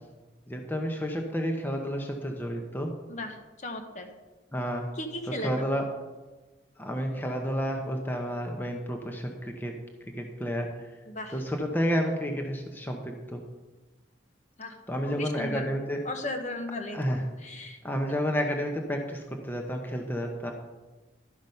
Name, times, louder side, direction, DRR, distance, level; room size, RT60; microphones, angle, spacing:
voice 1, 0.5-2.9 4.5-4.8 5.3-5.9 6.8-9.7 10.2-10.9 11.3-13.4 14.9-16.0 16.9-17.2 17.8-20.5, equal, 10° left, 2 dB, 0.8 m, -30 dB
voice 2, 3.6-4.1 5.0-5.5 11.1-11.3 14.6-14.7 15.1-15.7 16.0-17.0 17.4-17.8, left 1 dB, 40° left, 5 dB, 1.0 m, -35 dB
12.0 x 6.1 x 5.4 m, 1.2 s
head